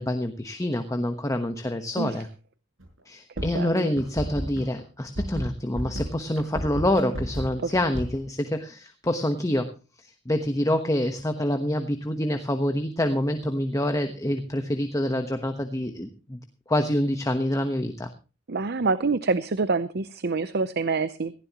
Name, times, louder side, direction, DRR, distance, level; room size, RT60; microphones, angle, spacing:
voice 1, 0.0-2.3 3.1-9.7 10.0-16.4 16.7-18.1, left 1 dB, 15° left, 7 dB, 1.1 m, -26 dB
sound 1, 2.8-3.0 3.4-8.2, equal, 90° right, 5.9 m, -32 dB
voice 2, 3.4-3.9 7.6-7.7 18.5-21.3, right 4 dB, 55° right, 14 dB, 0.7 m, -26 dB
17.5 x 15.5 x 3.0 m, 0.32 s
head